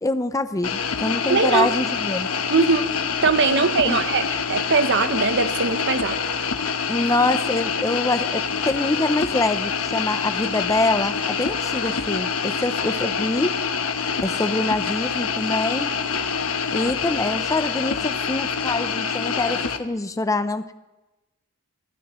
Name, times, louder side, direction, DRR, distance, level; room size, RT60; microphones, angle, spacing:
voice 1, 0.0-2.3 3.5-4.0 6.9-13.5 14.2-15.9 16.7-20.7, left 2 dB, 15° left, 11 dB, 0.5 m, -25 dB
sound 1, 0.6-19.8, left 6 dB, 70° left, 1.1 m, -26 dB
voice 2, 1.3-1.7 2.5-2.8 3.2-6.2, right 4 dB, 55° right, 10 dB, 0.8 m, -21 dB
23.0 x 16.0 x 3.1 m, 1.0 s
head